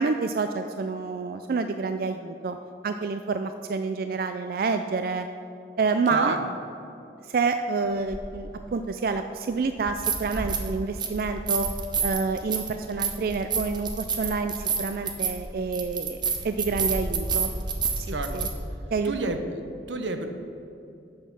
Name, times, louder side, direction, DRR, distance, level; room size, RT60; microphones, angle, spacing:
voice 1, 0.0-2.6 2.8-5.3 5.8-6.4 7.2-11.7 12.0-17.5 18.0-18.5 18.9-19.4, right 4 dB, 50° right, 8 dB, 0.3 m, -28 dB
voice 2, 6.1-6.4 18.1-18.5 19.0-20.3, right 3 dB, 85° right, 6 dB, 0.9 m, -30 dB
sound 1, 8.1-8.2 9.8-10.7 11.0-18.5, right 5 dB, 25° right, 0.7 m, -29 dB
8.9 x 6.5 x 6.1 m, 2.6 s
head